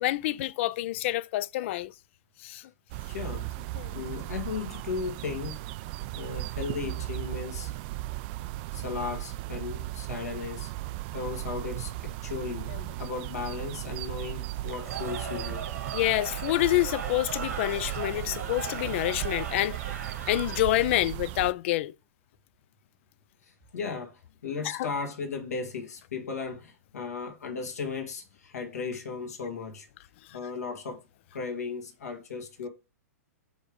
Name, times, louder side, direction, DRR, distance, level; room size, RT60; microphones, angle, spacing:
voice 1, 0.0-1.9 2.4-2.6 3.8-4.0 12.7-12.9 15.9-19.8 20.3-21.9 24.6-24.9, left 16 dB, 50° left, 0.4 m, -27 dB
sound 1, 2.9-21.5, right 18 dB, 40° right, 0.3 m, -36 dB
voice 2, 3.1-3.5 3.9-5.6 6.1-7.7 8.7-10.7 11.1-12.7 13.0-15.6 23.4-29.9 30.3-31.0 31.3-32.7, left 5 dB, 75° left, 1.6 m, -36 dB
Cheering / Crowd, 14.6-21.0, right 6 dB, 75° right, 1.6 m, -39 dB
5.3 x 3.6 x 4.9 m
hypercardioid pair, 120°, 8 cm